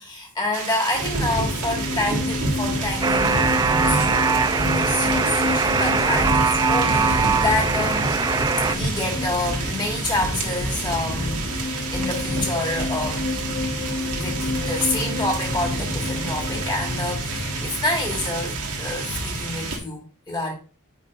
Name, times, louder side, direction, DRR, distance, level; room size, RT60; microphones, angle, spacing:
voice 1, 0.0-8.1 8.7-13.3 14.1-20.5, left 2 dB, 20° left, 1.7 m, -28 dB
sound 1, 0.5-19.8, right 2 dB, 85° right, 1.6 m, -28 dB
sound 2, 1.1-19.6, left 3 dB, 40° left, 0.6 m, -32 dB
Alarm, 3.0-8.7, right 5 dB, 15° right, 0.3 m, -22 dB
8.3 x 5.1 x 2.5 m
head